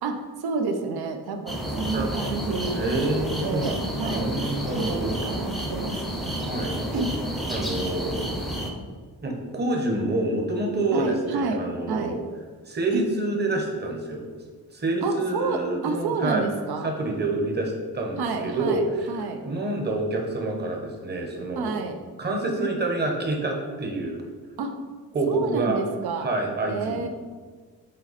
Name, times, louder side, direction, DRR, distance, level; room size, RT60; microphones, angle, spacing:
voice 1, 0.0-2.8 3.4-4.3 4.7-6.3 6.9-7.1 10.9-11.6 11.9-12.2 12.9-13.1 15.0-16.9 18.2-19.4 21.5-22.0 24.6-24.7 25.3-26.3 26.7-27.1, right 4 dB, 70° right, 5 dB, 0.9 m, -29 dB
sound 1, 1.5-8.7, right 1 dB, ahead, 0.7 m, -30 dB
voice 2, 2.7-5.2 6.4-6.8 7.5-8.3 9.2-12.2 12.7-14.2 14.7-16.5 16.8-21.7 22.2-24.2 25.1-25.8 26.2-27.1, right 2 dB, 25° right, 1 dB, 1.1 m, -27 dB
7.8 x 4.4 x 4.2 m, 1.5 s
cardioid pair, 155°, 40 cm